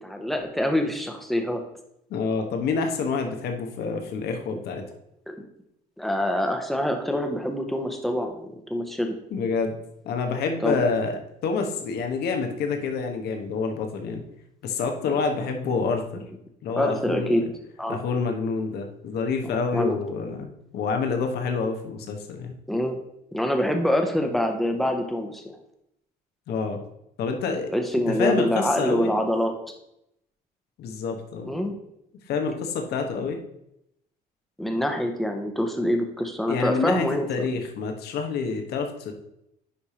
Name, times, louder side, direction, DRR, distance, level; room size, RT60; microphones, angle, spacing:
voice 1, 0.0-1.6 4.5-4.6 5.3-5.4 6.0-9.1 10.6-10.8 15.1-15.2 16.8-17.5 17.8-18.0 19.4-20.0 22.7-23.0 23.3-25.4 27.7-29.5 31.5-31.7 34.6-37.6, left 1 dB, ahead, 4 dB, 1.1 m, -25 dB
voice 2, 2.1-4.8 9.3-9.8 10.0-14.2 14.6-16.2 16.6-17.5 17.9-22.5 26.5-26.8 27.2-27.7 28.1-29.1 30.8-31.5 32.3-33.4 36.4-39.1, left 4 dB, 70° left, 4 dB, 1.3 m, -27 dB
10.0 x 3.5 x 4.3 m, 0.79 s
cardioid pair, 110°, 17 cm